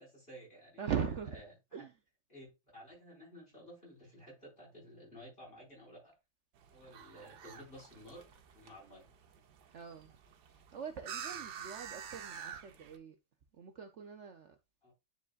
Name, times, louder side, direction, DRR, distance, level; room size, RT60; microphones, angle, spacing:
voice 1, 0.0-0.8 1.3-1.5 1.8-1.9 2.3-6.1 6.7-9.1 11.3-11.4 14.8-14.9, equal, 25° left, 5.3 m, -54 dB
voice 2, 0.8-1.4 1.7-1.9 9.7-10.1 10.5-13.2 13.5-14.6, right 7 dB, 80° right, 0.6 m, -41 dB
sound 1, 6.6-13.0, right 8 dB, 65° right, 1.3 m, -48 dB
9.8 x 5.4 x 2.4 m
omnidirectional pair, 2.1 m